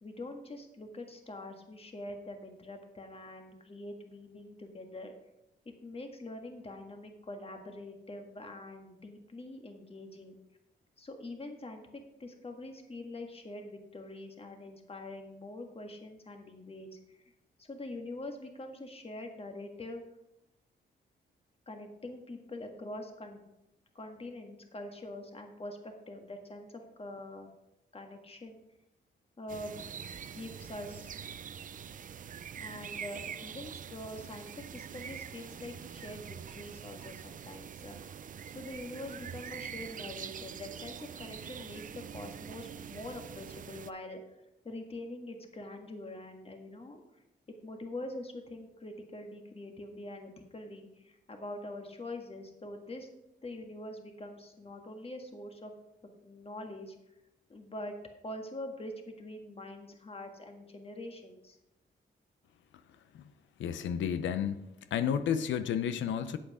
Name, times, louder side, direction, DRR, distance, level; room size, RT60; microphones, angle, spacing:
voice 1, 0.0-5.1 5.6-10.4 11.0-17.2 17.6-20.0 21.7-23.4 23.9-27.5 27.9-28.6 29.4-29.9 30.3-31.2 32.6-38.2 38.5-41.8 42.1-44.2 44.6-47.2 47.6-53.1 53.4-55.7 56.2-56.9 57.5-57.9 58.2-61.6, left 1 dB, 30° left, 4 dB, 1.7 m, -44 dB
sound 1, 29.5-43.9, right 8 dB, 45° right, 0.4 m, -44 dB
voice 2, 63.6-64.6 64.9-66.4, left 8 dB, 90° left, 11 dB, 0.7 m, -31 dB
8.5 x 7.8 x 4.8 m, 0.90 s
cardioid pair, 85°, 19 cm